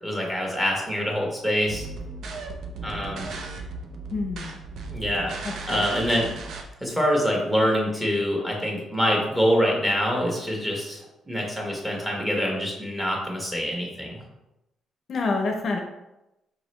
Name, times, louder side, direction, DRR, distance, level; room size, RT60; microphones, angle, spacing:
voice 1, 0.0-1.9 2.8-3.3 4.9-5.3 5.7-6.3 6.8-14.2, equal, 10° right, -2 dB, 1.3 m, -25 dB
sound 1, 1.6-6.6, right 3 dB, 70° right, 0.5 m, -36 dB
voice 2, 4.1-4.5 5.4-5.8 15.1-15.8, left 3 dB, 55° left, 3 dB, 0.6 m, -27 dB
5.0 x 2.9 x 3.1 m, 0.93 s
cardioid pair, 90°, 0 cm